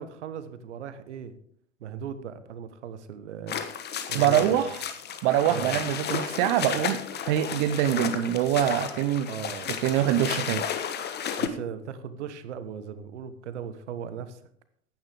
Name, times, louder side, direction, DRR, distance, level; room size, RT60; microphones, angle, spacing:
voice 1, 0.0-1.3 1.8-3.6 4.1-4.6 5.5-5.9 9.3-9.7 11.4-14.4, right 8 dB, 65° right, 12 dB, 1.4 m, -37 dB
sound 1, 3.5-11.5, left 8 dB, 25° left, 1.4 m, -33 dB
voice 2, 4.1-4.8 5.2-7.0 7.3-9.3 9.8-10.6, right 11 dB, 45° right, 10 dB, 0.9 m, -24 dB
15.5 x 10.5 x 3.6 m, 0.63 s
figure-of-eight pair, 90°, 38 cm